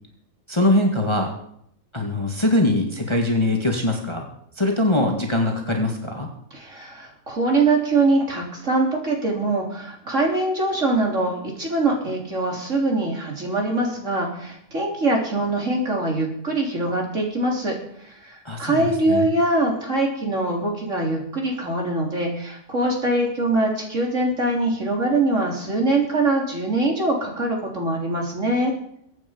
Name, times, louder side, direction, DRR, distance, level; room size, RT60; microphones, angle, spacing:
voice 1, 0.5-1.3 1.9-4.3 4.6-6.3 18.5-19.3, left 1 dB, 20° left, 1 dB, 1.9 m, -22 dB
voice 2, 6.5-28.7, right 2 dB, 50° right, -1 dB, 4.0 m, -23 dB
22.5 x 9.1 x 5.3 m, 0.71 s
omnidirectional pair, 1.7 m